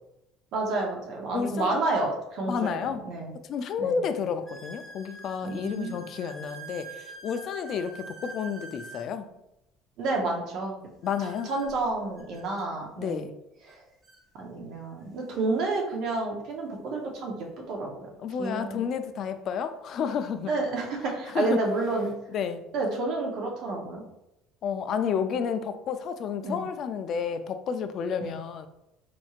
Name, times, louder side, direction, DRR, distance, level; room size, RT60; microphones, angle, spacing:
voice 1, 0.5-3.3 3.8-4.0 5.4-6.0 10.0-10.7 11.2-13.2 13.6-13.8 14.3-17.9 18.4-18.8 20.5-22.1 22.7-24.0 26.4-26.6 28.2-28.3, right 3 dB, 55° right, 0 dB, 0.8 m, -30 dB
voice 2, 1.3-1.9 2.5-3.0 3.5-9.3 11.0-11.5 13.0-13.3 18.2-20.5 21.3-21.6 22.3-22.6 24.6-28.7, left 6 dB, 40° left, 9 dB, 0.3 m, -31 dB
sound 1, 3.5-3.6 4.4-9.1 11.0-12.7 13.7-13.8 14.0-14.2 15.0-15.1 17.3-17.4 19.5-19.6 20.3-20.6 21.2-22.1, right 3 dB, 15° right, 1.0 m, -46 dB
4.2 x 3.0 x 2.4 m, 0.87 s
cardioid pair, 155°, 0 cm